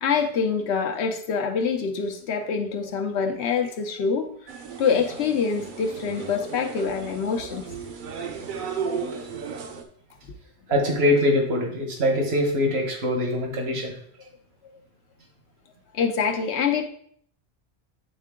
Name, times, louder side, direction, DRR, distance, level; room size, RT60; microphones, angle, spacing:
voice 1, 0.0-4.3 4.8-7.6 15.9-16.8, left 6 dB, 85° left, 4 dB, 1.0 m, -25 dB
sound 1, 4.5-9.8, right 6 dB, 55° right, 0.7 m, -35 dB
voice 2, 10.7-13.9, left 1 dB, 70° right, 1 dB, 1.5 m, -23 dB
8.3 x 3.6 x 3.6 m, 0.62 s
omnidirectional pair, 1.1 m